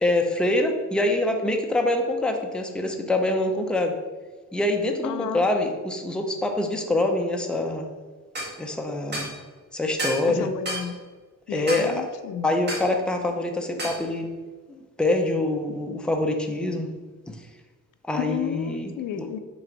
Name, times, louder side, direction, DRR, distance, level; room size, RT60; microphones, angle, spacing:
voice 1, 0.0-3.9 4.5-7.9 8.6-9.3 9.7-10.5 11.5-12.0 12.4-14.3 14.7-16.9 17.3-17.4 18.1-19.3, left 2 dB, 5° left, 3 dB, 0.5 m, -25 dB
voice 2, 5.0-5.5 10.3-11.0 11.5-12.5 18.2-19.4, left 9 dB, 75° left, 11 dB, 0.5 m, -32 dB
sound 1, 8.3-8.5 9.1-9.3 10.0-10.3 10.7-10.9 11.7-11.9 12.7-12.9 13.8-14.0, right 1 dB, 35° right, 1.6 m, -30 dB
6.1 x 3.4 x 5.1 m, 1.4 s
wide cardioid pair, 150°, 31 cm